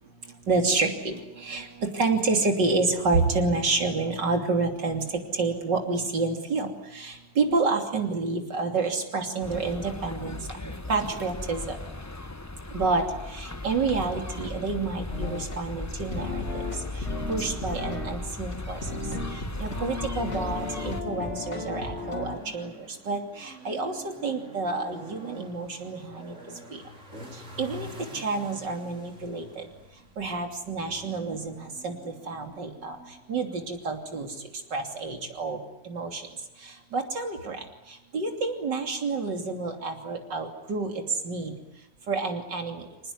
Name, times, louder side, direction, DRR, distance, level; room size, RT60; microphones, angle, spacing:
voice 1, 0.5-1.7 1.9-5.0 5.4-6.7 7.0-10.4 10.6-11.8 12.7-13.0 13.3-16.6 17.3-18.8 19.6-22.7 23.1-23.9 24.2-26.3 26.7-26.8 27.6-27.9 28.1-29.7 30.2-33.0 33.3-34.3 34.7-35.6 35.9-36.2 36.9-37.6 38.1-41.5 42.1-42.8, right 3 dB, 75° right, 4 dB, 3.7 m, -28 dB
sound 1, 9.4-21.0, left 2 dB, 15° left, 0.6 m, -37 dB
sound 2, 15.1-15.6 16.1-18.2 18.5-18.6 18.8-22.4, left 2 dB, 40° left, 3.6 m, -34 dB
sound 3, 20.0-35.3, equal, 45° right, 4.9 m, -48 dB
26.0 x 19.5 x 9.7 m, 0.97 s
omnidirectional pair, 1.9 m